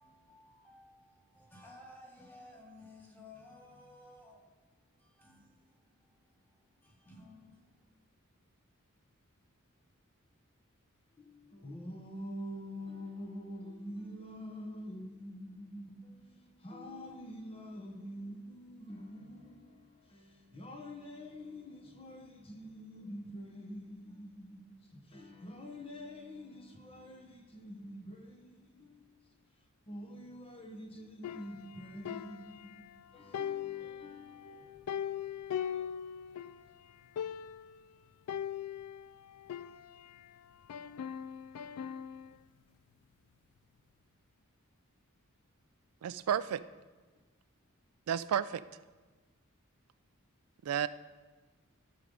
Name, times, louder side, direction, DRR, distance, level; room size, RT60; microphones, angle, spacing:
voice 1, 0.0-7.9, left 2 dB, 10° left, 1.5 m, -57 dB
voice 2, 11.2-36.3 37.1-37.3, equal, 25° left, 0.9 m, -47 dB
sound 1, 31.2-33.0 33.3-36.6 36.9-37.0 37.2-37.8 38.3-40.3 40.7-42.4, left 9 dB, 80° left, 0.3 m, -40 dB
voice 3, 46.0-46.6 48.1-48.6 50.6-50.9, right 9 dB, 75° right, 0.3 m, -31 dB
12.5 x 6.2 x 5.3 m
head